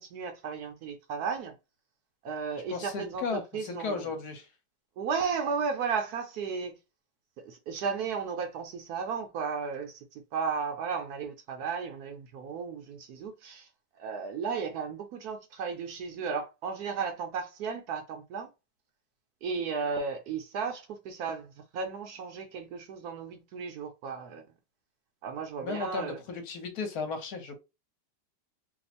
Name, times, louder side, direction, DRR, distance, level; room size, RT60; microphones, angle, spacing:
voice 1, 0.0-1.5 2.2-4.1 5.0-6.8 7.4-13.7 14.0-18.5 19.4-24.4 25.2-26.2, right 5 dB, 70° right, 1.0 m, -34 dB
voice 2, 2.7-4.5 25.6-27.6, left 4 dB, 65° left, 1.3 m, -35 dB
3.0 x 2.0 x 4.1 m
omnidirectional pair, 1.9 m